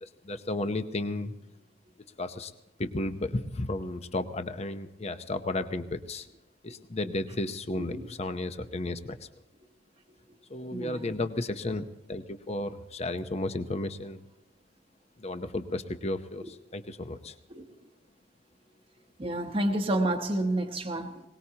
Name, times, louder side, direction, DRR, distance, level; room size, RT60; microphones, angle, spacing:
voice 1, 0.0-1.3 2.2-2.5 2.8-6.3 6.6-9.2 10.5-14.2 15.2-17.3, left 2 dB, 35° left, 0.8 m, -33 dB
voice 2, 10.7-11.2 16.4-16.5 17.5-17.6 19.2-21.2, right 1 dB, 30° right, 1.0 m, -29 dB
22.0 x 19.5 x 2.9 m
head